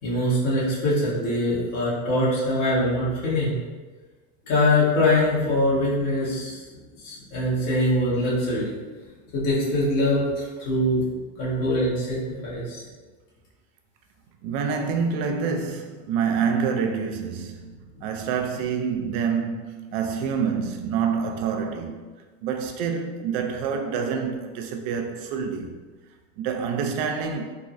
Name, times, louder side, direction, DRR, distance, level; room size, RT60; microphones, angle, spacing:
voice 1, 0.0-3.6 4.5-6.6 7.0-8.7 9.3-11.0 11.4-12.8, left 1 dB, 70° left, 1.4 m, -23 dB
voice 2, 14.4-22.0 22.4-25.7 26.4-27.5, right 6 dB, 75° right, 0.5 m, -27 dB
3.5 x 2.0 x 2.5 m
cardioid pair, 170°, 30 cm